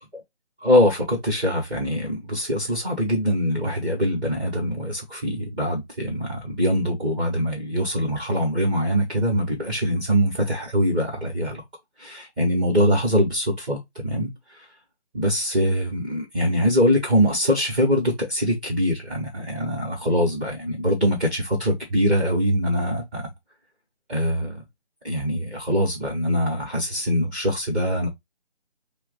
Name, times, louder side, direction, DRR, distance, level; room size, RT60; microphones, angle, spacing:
voice 1, 0.6-11.6 12.0-14.3 15.1-23.3 24.1-24.6 25.0-28.1, equal, 10° right, 0.9 m, -23 dB
6.0 x 2.2 x 4.0 m
figure-of-eight pair, 160°, 33 cm